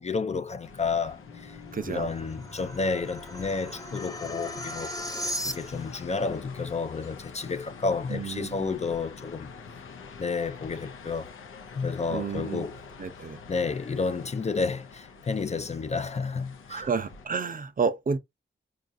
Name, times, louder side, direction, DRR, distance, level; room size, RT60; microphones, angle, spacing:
voice 1, 0.0-1.6 1.8-4.9 5.4-9.5 10.2-11.3 11.7-12.8 13.5-16.9, left 4 dB, 35° left, 0.4 m, -31 dB
sound 1, 0.6-17.3, left 5 dB, 90° left, 0.6 m, -47 dB
sound 2, 1.1-6.0, equal, 20° left, 0.8 m, -38 dB
voice 2, 1.7-2.1 8.1-8.7 12.1-12.7 13.0-13.4 16.7-18.2, right 5 dB, 45° right, 0.6 m, -30 dB
4.4 x 2.4 x 2.6 m
cardioid pair, 55°, 20 cm